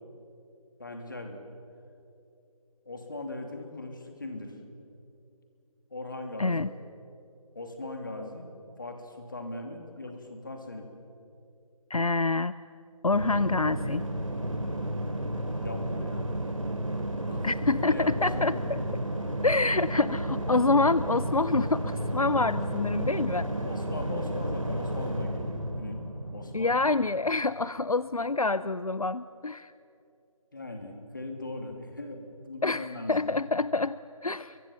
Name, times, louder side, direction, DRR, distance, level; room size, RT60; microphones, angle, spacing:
voice 1, 0.8-1.4 2.8-4.6 5.9-6.8 7.5-8.5 8.8-10.9 15.6-16.3 17.3-18.7 23.6-26.0 26.3-26.7 30.5-33.4, left 2 dB, 35° left, 4 dB, 2.9 m, -39 dB
voice 2, 6.4-6.7 11.9-12.5 13.0-14.0 17.4-18.8 19.4-23.5 26.5-29.7 32.6-34.6, left 3 dB, 75° left, 16 dB, 0.7 m, -27 dB
sound 1, 13.1-27.5, right 1 dB, 65° right, 3.1 m, -32 dB
25.5 x 23.5 x 7.3 m, 2.7 s
figure-of-eight pair, 165°, 19 cm